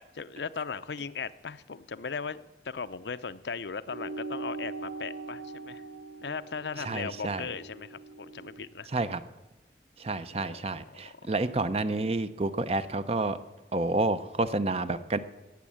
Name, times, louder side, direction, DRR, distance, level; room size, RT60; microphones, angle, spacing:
voice 1, 0.1-5.8 6.2-8.9 10.3-11.3, left 5 dB, 75° left, 13 dB, 0.6 m, -38 dB
sound 1, 3.9-8.7, right 3 dB, 80° right, 0.8 m, -41 dB
voice 2, 6.8-7.5 8.9-9.2 10.0-13.4 13.7-15.2, right 2 dB, 35° right, 12 dB, 0.7 m, -29 dB
18.0 x 7.3 x 8.6 m, 1.1 s
head